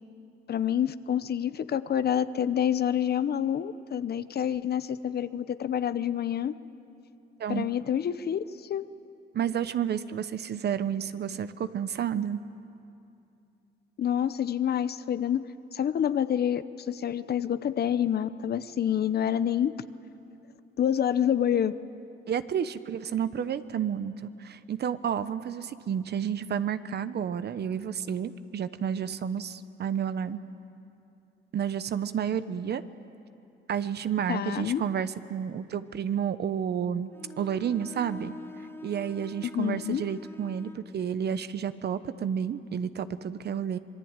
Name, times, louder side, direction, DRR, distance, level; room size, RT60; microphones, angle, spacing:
voice 1, 0.5-6.5 7.5-8.4 8.7-8.9 14.0-15.5 15.7-19.7 20.8-21.7 34.3-34.8 39.4-40.0, left 9 dB, 55° left, 14 dB, 0.9 m, -27 dB
voice 2, 9.3-12.4 22.3-30.4 31.5-32.8 33.7-38.3 38.8-43.8, right 8 dB, 55° right, 13 dB, 1.0 m, -31 dB
Bowed string instrument, 37.1-40.9, left 2 dB, 10° left, 1.0 m, -45 dB
26.5 x 21.5 x 8.9 m, 2.7 s
cardioid pair, 90°, 20 cm